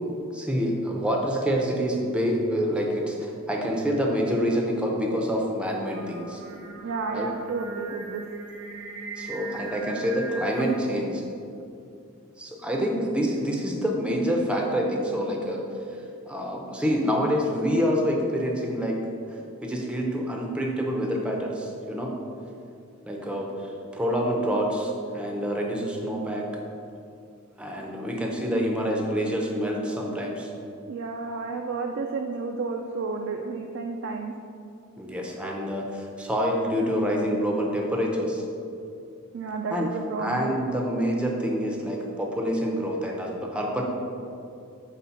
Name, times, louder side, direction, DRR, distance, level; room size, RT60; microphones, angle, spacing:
voice 1, 0.3-6.4 7.1-7.3 9.2-11.2 12.4-15.6 16.3-19.0 19.6-22.1 23.0-26.4 27.6-30.5 35.0-38.4 39.7-39.9 40.2-43.8, equal, 5° right, -1 dB, 0.5 m, -27 dB
Singing, 5.9-11.0, right 2 dB, 75° right, 0.9 m, -39 dB
voice 2, 6.8-8.2 30.9-34.3 39.3-40.5, right 4 dB, 60° right, 3 dB, 0.3 m, -31 dB
4.4 x 4.1 x 5.7 m, 2.6 s
head